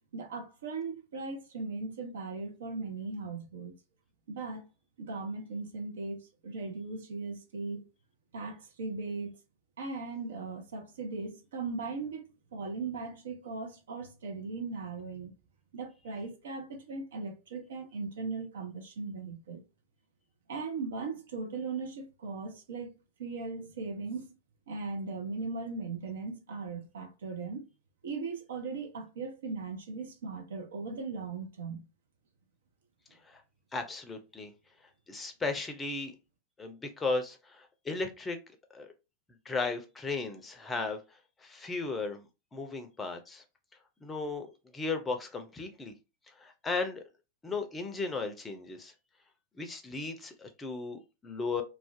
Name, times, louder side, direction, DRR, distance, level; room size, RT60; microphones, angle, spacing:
voice 1, 0.1-3.7 4.3-4.6 5.0-7.9 8.3-9.4 9.8-15.3 15.7-19.6 20.5-22.9 23.2-24.3 24.7-27.6 28.0-31.9, right 4 dB, 60° right, 0.5 m, -38 dB
voice 2, 33.7-34.5 35.1-36.1 36.6-38.4 38.7-38.9 39.5-41.0 41.4-42.2 42.5-43.4 44.0-44.5 44.7-45.9 46.4-47.0 47.4-48.9 49.6-51.6, left 3 dB, 15° left, 0.5 m, -35 dB
2.4 x 2.1 x 2.5 m
figure-of-eight pair, 90°, 0 cm